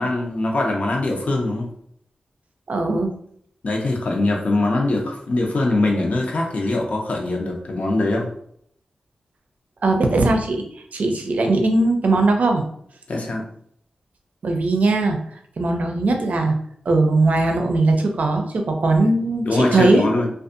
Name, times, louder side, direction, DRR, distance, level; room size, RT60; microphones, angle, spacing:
voice 1, 0.0-1.7 3.6-8.3 13.1-13.5 19.4-20.3, left 2 dB, 65° left, 0 dB, 0.6 m, -22 dB
voice 2, 2.7-3.1 9.8-10.6 10.9-12.6 14.4-15.2 15.6-16.5 16.9-20.1, right 2 dB, 75° right, 4 dB, 0.5 m, -19 dB
2.5 x 2.3 x 2.5 m, 0.66 s
cardioid pair, 60°, 3 cm